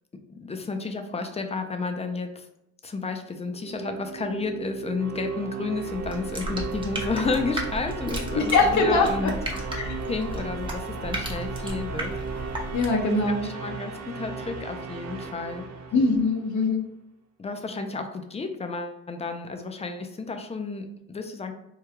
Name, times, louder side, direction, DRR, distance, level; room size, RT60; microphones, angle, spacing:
voice 1, 0.3-2.5 2.8-9.4 9.8-12.5 13.0-15.7 17.4-21.5, left 4 dB, 20° left, 6 dB, 0.4 m, -32 dB
sound 1, 3.4-16.5, right 5 dB, 60° right, 0.6 m, -36 dB
sound 2, 5.9-13.1, right 1 dB, 15° right, 0.7 m, -34 dB
voice 2, 8.3-9.3 9.8-10.0 12.7-13.5 15.9-16.9, left 3 dB, 70° left, 2 dB, 0.8 m, -22 dB
3.1 x 2.3 x 3.4 m, 0.81 s
cardioid pair, 90°, 30 cm